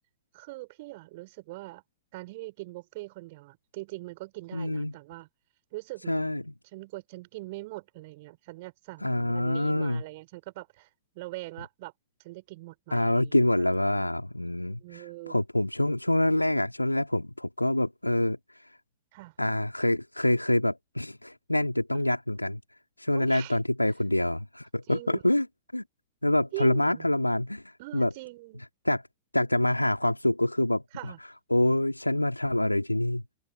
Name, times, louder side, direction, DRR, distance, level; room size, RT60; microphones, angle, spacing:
voice 1, 0.3-1.8 2.1-5.3 5.7-6.4 6.7-10.9 11.1-11.9 12.2-14.1 14.8-15.4 19.1-19.3 21.9-22.0 23.1-23.6 24.9-25.2 26.5-27.2 27.8-28.6 30.9-31.2, right 21 dB, 50° right, 5.8 m, -42 dB
voice 2, 4.5-4.9 6.1-6.4 9.0-10.0 12.9-18.4 19.4-22.6 23.0-25.5 25.7-25.8 26.2-27.6 27.9-28.1 28.8-29.0 29.3-30.8 31.5-33.4, left 1 dB, 85° left, 3.0 m, -26 dB
open air
figure-of-eight pair, 90°, 0 cm